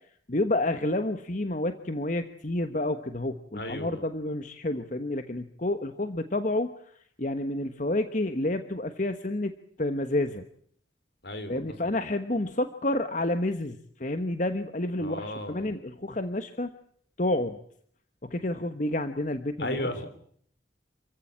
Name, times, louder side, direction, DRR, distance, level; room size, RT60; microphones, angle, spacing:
voice 1, 0.3-6.7 7.2-9.5 9.8-10.4 11.5-16.7 17.2-17.6 18.2-20.0, left 1 dB, 45° left, 9 dB, 1.3 m, -29 dB
voice 2, 3.5-4.0 11.2-11.9 15.0-15.8 19.6-20.1, left 1 dB, 70° left, 10 dB, 4.6 m, -35 dB
28.0 x 15.5 x 8.8 m, 0.63 s
head